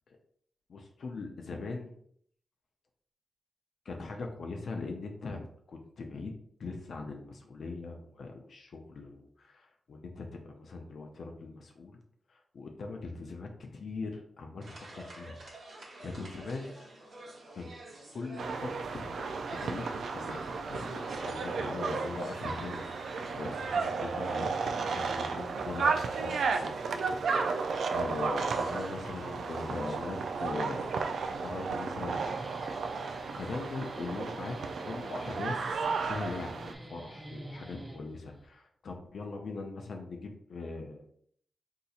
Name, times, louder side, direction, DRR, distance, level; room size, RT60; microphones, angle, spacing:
voice 1, 0.7-1.9 3.9-6.3 6.6-12.0 12.3-14.6 14.9-15.4 16.0-16.7 17.5-17.7 18.1-27.1 27.9-31.0 31.3-32.4 33.3-34.6 34.8-41.1, left 3 dB, 65° left, 2 dB, 0.5 m, -41 dB
sound 1, 14.6-33.2, right 1 dB, 55° right, 1.0 m, -51 dB
sound 2, 18.4-36.7, right 4 dB, 90° right, 0.3 m, -33 dB
Guitar, 32.0-38.5, right 1 dB, 20° right, 0.5 m, -48 dB
4.0 x 2.8 x 2.4 m, 0.64 s
wide cardioid pair, 155°, 0 cm